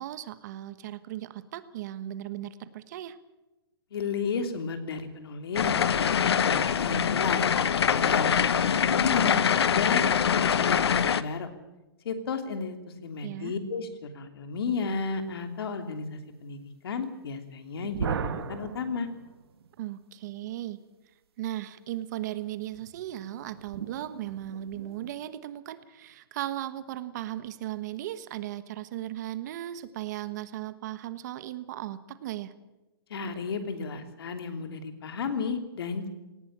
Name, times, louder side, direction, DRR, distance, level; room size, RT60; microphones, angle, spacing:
voice 1, 0.0-3.2 13.2-13.5 19.8-20.8 21.4-32.5, right 13 dB, 45° right, 13 dB, 1.3 m, -37 dB
voice 2, 3.9-7.4 7.9-9.4 9.7-11.5 12.0-12.8 13.0-13.9 14.1-16.6 16.8-19.1 33.1-36.1, left 5 dB, 70° left, 7 dB, 3.1 m, -33 dB
sound 1, 5.5-11.2, left 7 dB, 85° left, 1.1 m, -24 dB
sound 2, 17.8-19.8 22.7-25.1, right 7 dB, 70° right, 1.9 m, -37 dB
19.0 x 18.5 x 8.8 m, 1.1 s
hypercardioid pair, 155°, 13 cm